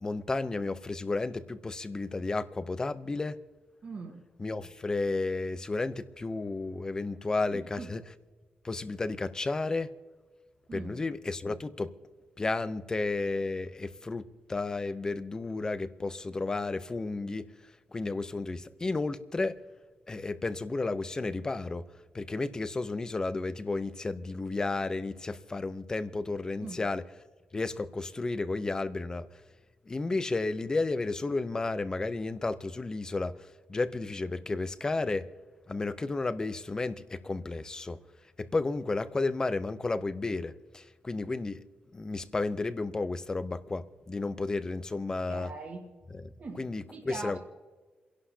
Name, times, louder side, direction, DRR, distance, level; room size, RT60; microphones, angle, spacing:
voice 1, 0.0-3.4 4.4-8.0 8.6-9.9 10.7-11.9 12.4-14.2 14.5-17.5 17.9-19.5 20.1-21.8 22.1-27.0 27.5-29.3 29.9-33.3 33.7-35.3 35.7-38.0 38.4-41.6 41.9-45.5 46.1-46.3 46.5-47.4, left 3 dB, 20° left, 13 dB, 0.6 m, -32 dB
voice 2, 3.8-4.2 7.5-7.9 10.7-11.0 26.6-26.8 45.3-45.9 46.4-46.6 46.9-47.4, right 4 dB, 45° right, 1 dB, 1.7 m, -41 dB
29.5 x 11.5 x 2.8 m, 1.4 s
wide cardioid pair, 160°, 3 cm